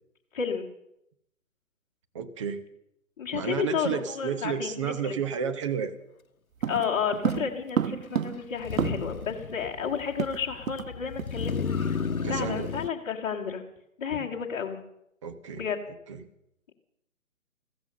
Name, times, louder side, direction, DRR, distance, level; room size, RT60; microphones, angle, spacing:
voice 1, 0.3-0.7 3.2-5.1 6.7-11.9 12.3-13.6 14.0-14.8 15.5-15.8, left 6 dB, 30° left, -4 dB, 1.8 m, -31 dB
voice 2, 2.1-2.6 3.3-5.9 12.2-12.7 15.2-15.6 16.1-16.2, right 7 dB, 20° right, 9 dB, 0.9 m, -31 dB
sound 1, 6.6-9.3 9.6-9.7 9.9-10.9 11.2-11.4 11.8-12.0, right 8 dB, 70° right, 0.5 m, -31 dB
Motor vehicle (road), 7.3-7.4 8.6-12.9, left 5 dB, 85° left, 1.0 m, -33 dB
15.0 x 14.0 x 6.6 m, 0.79 s
figure-of-eight pair, 140°, 41 cm